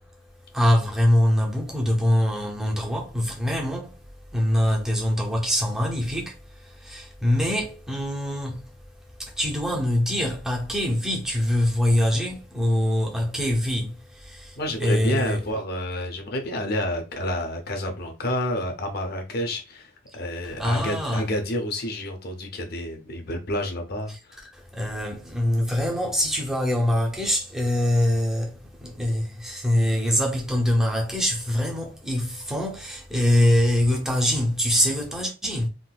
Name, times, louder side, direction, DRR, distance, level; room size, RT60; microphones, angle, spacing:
voice 1, 0.5-4.0 4.3-8.7 9.2-15.4 20.4-21.3 24.1-24.2 24.5-35.7, left 1 dB, 5° right, 0.7 m, -24 dB
voice 2, 14.6-24.1, left 1 dB, 50° left, 0.7 m, -29 dB
3.7 x 2.6 x 2.3 m
head